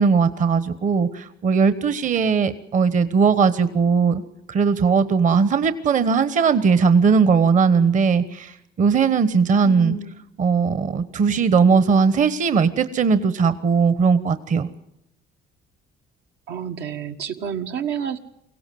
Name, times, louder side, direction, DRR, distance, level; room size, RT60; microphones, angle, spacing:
voice 1, 0.0-4.2 4.5-10.0 10.4-14.7, right 5 dB, 50° right, 13 dB, 1.2 m, -19 dB
voice 2, 9.6-10.1 16.5-18.2, right 7 dB, 85° right, 5 dB, 1.6 m, -29 dB
23.5 x 17.0 x 7.8 m, 0.83 s
cardioid pair, 110°, 17 cm